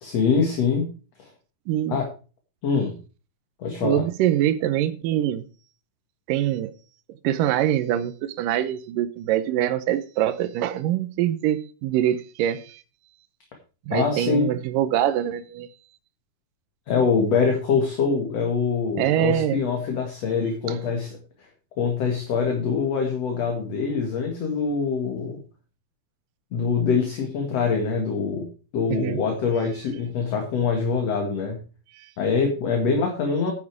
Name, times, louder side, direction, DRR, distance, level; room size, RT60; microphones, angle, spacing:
voice 1, 0.0-0.9 1.2-1.3 1.9-2.1 2.6-2.9 3.6-4.0 13.9-14.5 16.9-21.1 21.8-25.4 26.5-28.5 28.7-31.6 32.2-33.5, left 5 dB, 50° left, 2.7 m, -24 dB
voice 2, 1.7-2.0 3.8-5.4 6.3-6.7 7.2-12.8 13.9-15.7 19.0-19.6 28.9-29.2 31.9-32.1, right 12 dB, 80° right, 2.3 m, -24 dB
9.7 x 9.7 x 4.7 m
omnidirectional pair, 4.2 m